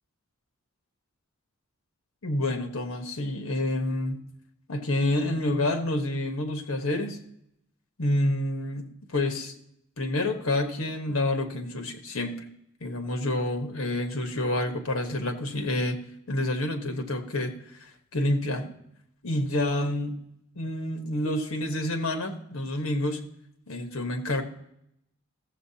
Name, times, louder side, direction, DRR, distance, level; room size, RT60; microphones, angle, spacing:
voice 1, 2.2-4.2 4.7-7.2 8.0-8.9 9.1-9.5 10.0-12.5 12.8-16.0 16.3-17.5 18.1-18.7 19.2-20.2 20.5-23.2 23.7-24.4, left 1 dB, 65° left, 5 dB, 1.3 m, -28 dB
14.5 x 7.7 x 2.8 m, 0.77 s
head